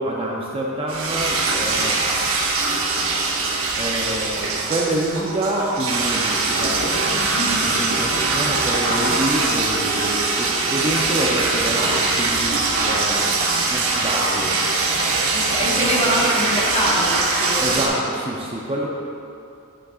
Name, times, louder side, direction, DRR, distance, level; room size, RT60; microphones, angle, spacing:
voice 1, 0.0-2.0 3.3-3.5 3.7-14.5 15.8-15.9 17.4-18.9, right 1 dB, 25° right, -2 dB, 0.6 m, -27 dB
sound 1, 0.9-17.9, right 3 dB, 65° right, 0.9 m, -22 dB
voice 2, 7.3-7.7 15.3-17.8, equal, 30° left, -5 dB, 1.3 m, -24 dB
10.0 x 6.3 x 2.4 m, 2.6 s
head